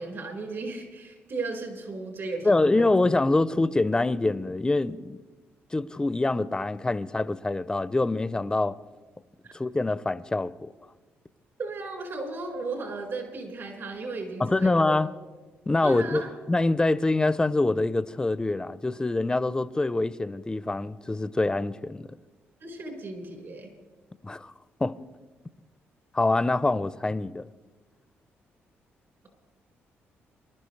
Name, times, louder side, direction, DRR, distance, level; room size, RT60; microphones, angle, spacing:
voice 1, 0.0-2.9 9.4-9.5 11.6-15.0 15.8-16.3 22.6-23.7, right 3 dB, 60° right, 4.4 m, -35 dB
voice 2, 2.4-5.2 5.7-8.7 9.5-10.7 14.4-15.1 15.7-16.2 16.5-22.1 24.2-24.5 24.8-24.9 26.1-27.4, left 2 dB, 15° left, 0.5 m, -25 dB
24.0 x 12.0 x 3.2 m
cardioid pair, 75°, 5 cm